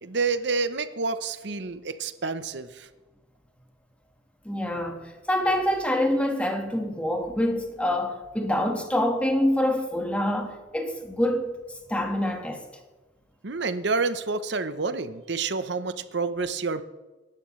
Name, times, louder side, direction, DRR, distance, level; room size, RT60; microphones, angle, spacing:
voice 1, 0.0-2.9 13.4-16.8, right 4 dB, 65° right, 0.9 m, -28 dB
voice 2, 4.4-11.6 11.9-12.6, left 1 dB, 5° left, 1.6 m, -26 dB
21.5 x 11.0 x 3.2 m
head